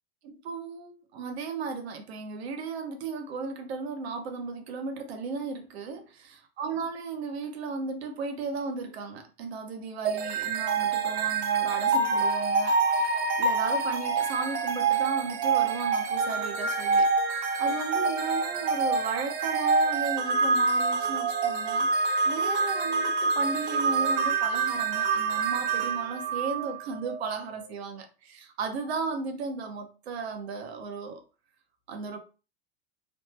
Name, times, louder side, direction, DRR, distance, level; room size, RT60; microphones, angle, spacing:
voice 1, 0.2-31.2 31.9-32.2, right 4 dB, 80° right, 0.8 m, -35 dB
sound 1, 10.1-27.2, right 4 dB, 50° right, 0.8 m, -26 dB
3.1 x 2.0 x 3.2 m
hypercardioid pair, 100°, 32 cm